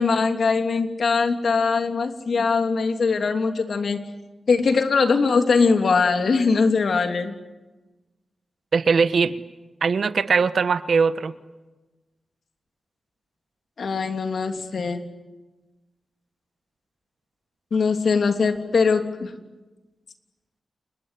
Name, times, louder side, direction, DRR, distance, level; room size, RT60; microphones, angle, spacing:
voice 1, 0.0-4.0 4.5-7.3 13.8-15.0 17.7-19.3, left 4 dB, 70° left, 6 dB, 2.9 m, -21 dB
voice 2, 8.7-9.3 9.8-11.3, right 5 dB, 70° right, 13 dB, 1.3 m, -20 dB
29.0 x 20.5 x 9.9 m, 1.2 s
cardioid pair, 65°, 0 cm